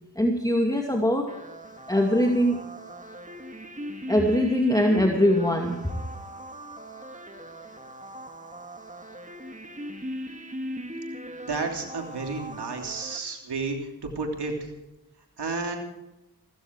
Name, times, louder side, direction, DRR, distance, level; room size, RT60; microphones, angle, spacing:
voice 1, 0.2-1.3 1.9-2.6 4.1-5.8, equal, 10° left, 2 dB, 2.3 m, -22 dB
sound 1, 1.3-13.2, equal, 20° right, 2.6 m, -39 dB
voice 2, 11.5-13.8 14.1-14.7 15.4-15.8, right 4 dB, 85° right, 3 dB, 3.2 m, -31 dB
16.5 x 14.0 x 4.7 m, 0.96 s
cardioid pair, 40°, 39 cm